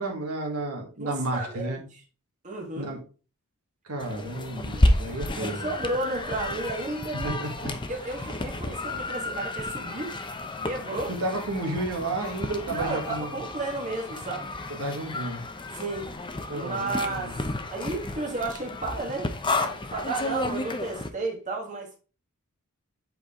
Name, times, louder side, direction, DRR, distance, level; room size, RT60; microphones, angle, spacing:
voice 1, 0.0-1.9 2.8-3.0 3.9-5.7 7.2-7.7 11.1-13.3 14.8-15.4 16.5-17.3, right 2 dB, 80° right, 1.9 m, -32 dB
voice 2, 1.0-2.0 2.4-2.9 5.3-10.2 10.6-11.1 12.7-14.5 15.7-16.1 16.5-17.4 17.7-19.3 19.6-21.9, right 2 dB, 35° right, 1.7 m, -33 dB
sound 1, 4.0-21.1, left 2 dB, 20° left, 0.7 m, -31 dB
7.8 x 4.7 x 3.7 m
head